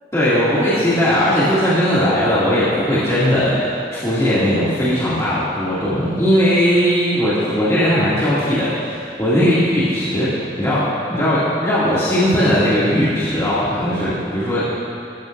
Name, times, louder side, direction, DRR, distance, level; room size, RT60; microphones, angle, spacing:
voice 1, 0.1-3.6 3.9-10.3 10.6-10.8 11.1-14.6, equal, 20° left, -12 dB, 2.5 m, -18 dB
19.5 x 14.0 x 2.6 m, 2.4 s
head